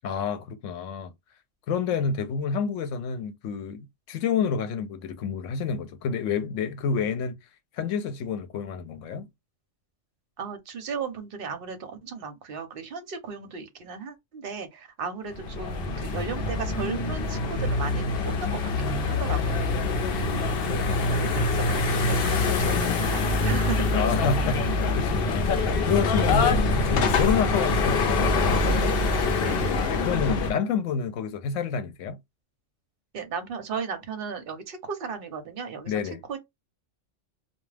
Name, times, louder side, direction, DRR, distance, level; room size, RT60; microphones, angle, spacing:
voice 1, 0.0-1.1 1.7-7.4 7.8-9.3 20.0-21.3 23.9-28.7 29.9-32.2 35.9-36.2, left 6 dB, 80° left, 0.9 m, -29 dB
voice 2, 10.4-19.7 21.1-24.0 27.5-27.7 29.4-29.6 33.1-35.9 36.3-36.4, right 5 dB, 55° right, 0.8 m, -35 dB
sound 1, 15.3-30.5, left 3 dB, 55° left, 0.8 m, -25 dB
2.3 x 2.2 x 3.2 m
omnidirectional pair, 1.3 m